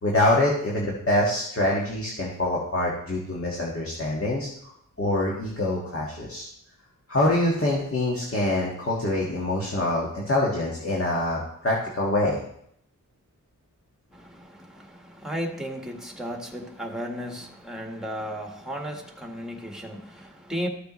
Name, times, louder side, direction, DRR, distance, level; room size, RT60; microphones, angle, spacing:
voice 1, 0.0-4.5 5.0-6.5 7.1-12.4, left 1 dB, 40° left, -4 dB, 1.6 m, -25 dB
voice 2, 14.1-20.7, equal, ahead, 2 dB, 1.5 m, -35 dB
13.5 x 6.8 x 3.1 m, 0.73 s
wide cardioid pair, 105°, 33 cm